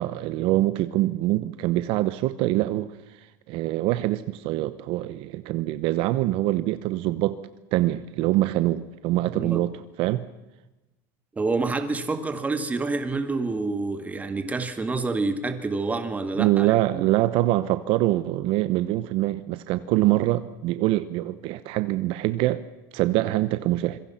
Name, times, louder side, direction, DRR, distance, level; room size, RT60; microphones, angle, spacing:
voice 1, 0.0-2.9 3.5-7.4 7.7-9.7 10.0-10.2 16.4-22.6 22.9-24.0, right 16 dB, 55° right, 1.0 m, -24 dB
voice 2, 11.4-17.1, right 3 dB, 15° right, 2.1 m, -28 dB
26.0 x 23.0 x 5.8 m
supercardioid pair, 135°, 11 cm